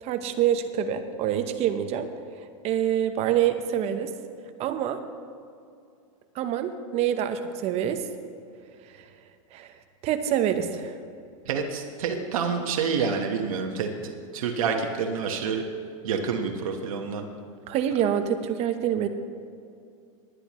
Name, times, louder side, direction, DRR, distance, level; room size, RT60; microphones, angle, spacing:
voice 1, 0.0-2.1 2.6-4.1 4.6-5.0 6.3-8.0 9.5-9.7 10.0-11.0 17.7-19.1, right 10 dB, 35° right, 9 dB, 0.9 m, -26 dB
voice 2, 11.5-15.6 16.0-17.3, right 5 dB, 80° right, 3 dB, 1.4 m, -28 dB
19.5 x 10.5 x 3.1 m, 2.4 s
supercardioid pair, 135°, 18 cm